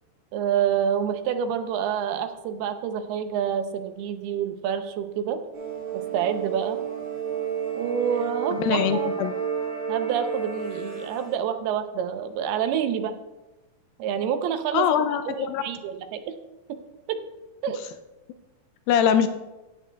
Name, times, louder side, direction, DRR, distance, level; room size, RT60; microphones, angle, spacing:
voice 1, 0.3-5.4 5.9-6.8 7.8-9.3 9.9-13.1 14.0-14.9 15.3-16.3 16.7-16.8 17.1-17.2 17.6-17.8, right 8 dB, 90° right, 8 dB, 2.8 m, -28 dB
sound 1, 5.5-11.4, right 7 dB, 50° right, 5.1 m, -31 dB
voice 2, 8.5-9.3 14.7-15.6 18.9-19.3, left 8 dB, 80° left, 9 dB, 2.2 m, -22 dB
15.0 x 10.0 x 2.3 m, 1.1 s
omnidirectional pair, 4.4 m